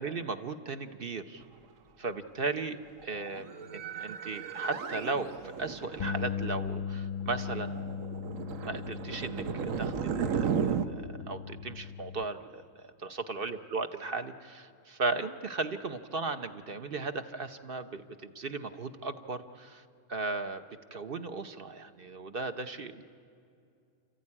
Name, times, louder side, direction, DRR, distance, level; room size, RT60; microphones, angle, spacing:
voice 1, 0.0-1.4 2.0-7.8 8.4-12.6 13.0-19.8 20.1-20.6 20.9-23.0, right 3 dB, 50° right, 9 dB, 1.0 m, -36 dB
sound 1, 3.0-10.9, right 7 dB, 75° right, 1.3 m, -35 dB
Bass guitar, 6.0-12.2, left 7 dB, 45° left, 0.7 m, -38 dB
30.0 x 14.5 x 9.8 m, 2.4 s
omnidirectional pair, 1.4 m